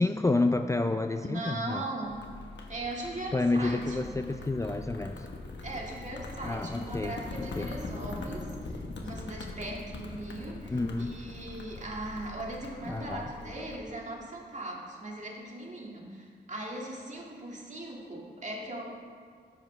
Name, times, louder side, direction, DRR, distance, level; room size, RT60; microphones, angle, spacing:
voice 1, 0.0-1.8 3.3-5.3 6.4-7.7 10.7-11.1 12.9-13.3, left 2 dB, 15° left, 6 dB, 0.4 m, -29 dB
voice 2, 1.2-2.2 2.7-4.2 5.6-18.8, right 2 dB, 40° right, -2 dB, 1.9 m, -39 dB
sound 1, 2.0-13.8, left 2 dB, 90° left, 1.2 m, -42 dB
13.5 x 10.5 x 3.3 m, 2.1 s
wide cardioid pair, 115°, 18 cm